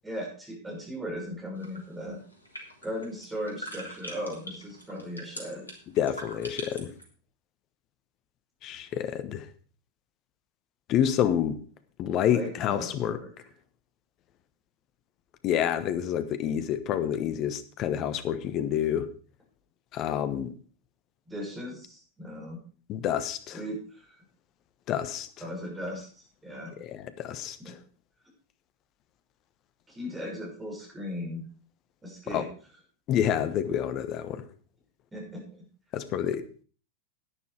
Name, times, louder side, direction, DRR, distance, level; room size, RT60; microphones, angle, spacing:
voice 1, 0.0-2.2 2.8-5.7 12.3-13.3 21.3-22.6 23.5-24.2 25.4-26.7 27.6-27.7 29.9-31.5 32.0-32.5 35.1-35.6, equal, 10° right, -1 dB, 6.0 m, -37 dB
sound 1, 1.6-7.0, equal, 80° left, 2.7 m, -43 dB
voice 2, 6.0-6.9 8.6-9.4 10.9-11.6 12.0-13.2 15.4-19.1 19.9-20.5 22.9-23.6 24.9-25.3 26.8-27.8 32.3-32.4 33.1-34.5 35.9-36.4, left 10 dB, 35° left, 11 dB, 1.2 m, -28 dB
11.5 x 9.9 x 4.7 m, 0.39 s
figure-of-eight pair, 90°, 0 cm